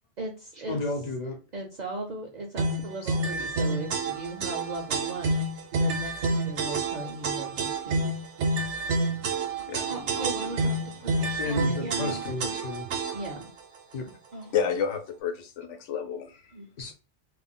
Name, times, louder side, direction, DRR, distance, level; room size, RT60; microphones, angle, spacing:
voice 1, 0.2-0.9 1.5-5.5 5.8-8.0 9.9-12.5 13.1-13.5 14.3-14.5 16.5-16.7, right 1 dB, 55° right, 0.5 m, -38 dB
voice 2, 0.7-1.4 3.0-3.2 11.4-12.9 13.9-14.1 16.8-16.9, left 2 dB, 55° left, 0.5 m, -32 dB
sound 1, 2.6-13.4, right 2 dB, 75° right, 0.9 m, -28 dB
voice 3, 9.5-10.6 11.1-11.2 14.5-16.3, left 7 dB, 90° left, 1.0 m, -31 dB
2.4 x 2.1 x 3.6 m
omnidirectional pair, 1.2 m